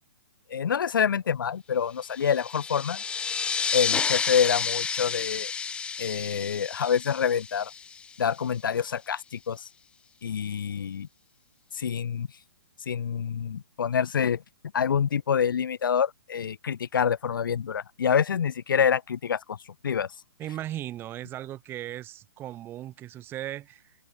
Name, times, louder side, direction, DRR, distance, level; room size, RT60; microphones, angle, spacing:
voice 1, 0.5-3.0 3.7-5.5 6.0-7.7 8.2-9.7 10.2-11.1 11.7-12.3 12.9-14.4 14.7-19.6 19.8-20.1, left 7 dB, 70° left, 3.0 m, -26 dB
sound 1, 2.1-8.4, left 6 dB, 10° left, 1.2 m, -31 dB
voice 2, 20.4-24.0, right 13 dB, 20° right, 7.4 m, -37 dB
hypercardioid pair, 150°, 11 cm